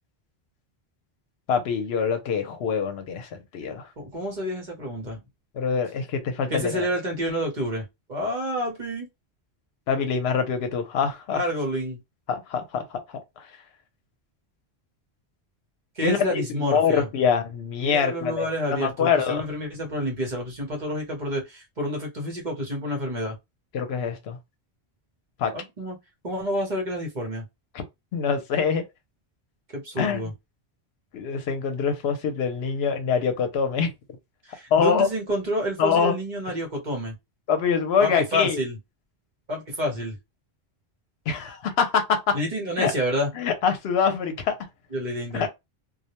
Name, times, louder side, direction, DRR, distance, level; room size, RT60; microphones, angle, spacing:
voice 1, 1.5-3.9 5.6-6.9 9.9-11.4 12.3-13.0 13.4-13.5 16.0-19.4 23.7-24.4 25.4-25.5 27.7-27.8 28.1-28.8 30.0-30.3 31.1-33.9 34.7-35.1 35.8-36.1 37.5-38.6 41.3-42.4 42.8-42.9 43.4-44.5 45.3-45.5, left 6 dB, 75° left, 0.8 m, -24 dB
voice 2, 4.0-5.2 6.5-9.1 11.3-12.0 16.0-17.1 17.8-23.4 25.5-26.0 26.2-27.4 29.7-30.3 34.4-37.1 38.0-38.8 39.5-40.2 42.3-43.3 44.9-45.5, equal, 45° right, 1.0 m, -29 dB
2.3 x 2.0 x 2.9 m
omnidirectional pair, 1.1 m